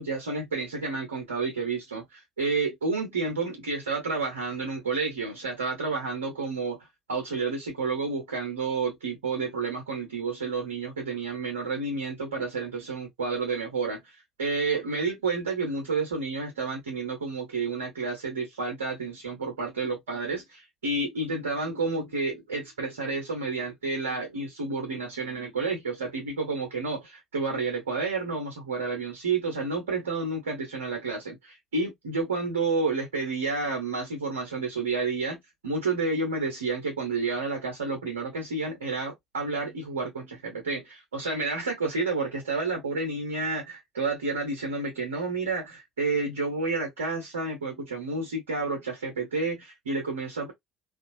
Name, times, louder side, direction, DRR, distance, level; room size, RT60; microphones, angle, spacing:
voice 1, 0.0-50.5, right 3 dB, 80° right, 1.0 m, -30 dB
3.4 x 2.6 x 2.6 m
figure-of-eight pair, 55°, 0 cm